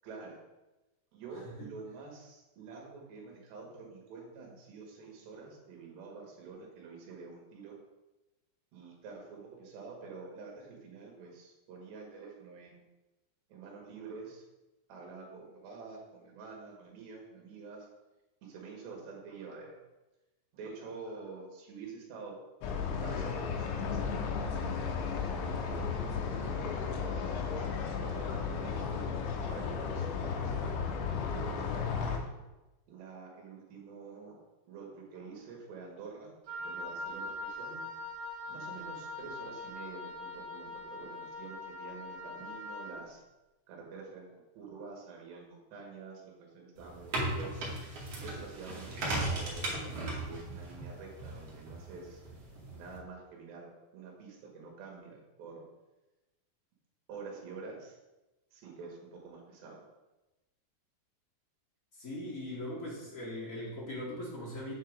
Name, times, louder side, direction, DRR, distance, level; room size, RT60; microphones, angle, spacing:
voice 1, 0.0-0.4 1.1-7.8 8.7-12.9 13.5-14.5 14.9-17.9 18.4-19.8 20.5-22.7 23.0-26.0 26.3-26.9 28.0-29.1 29.4-31.9 32.9-34.4 34.7-36.3 36.6-37.9 38.5-43.2 43.7-47.7 48.2-52.2 52.7-55.7 57.1-58.0 58.5-59.8, right 4 dB, 75° right, 0 dB, 3.9 m, -47 dB
sound 1, 22.6-32.2, left 6 dB, 90° left, 3.3 m, -34 dB
Wind instrument woodwind instrument, 36.5-43.0, left 1 dB, 60° right, 3.2 m, -42 dB
sound 2, 46.8-53.0, right 2 dB, 45° right, 2.5 m, -37 dB
voice 2, 61.9-64.7, left 1 dB, 45° left, -5 dB, 1.0 m, -40 dB
8.8 x 8.0 x 3.8 m, 1.0 s
omnidirectional pair, 5.1 m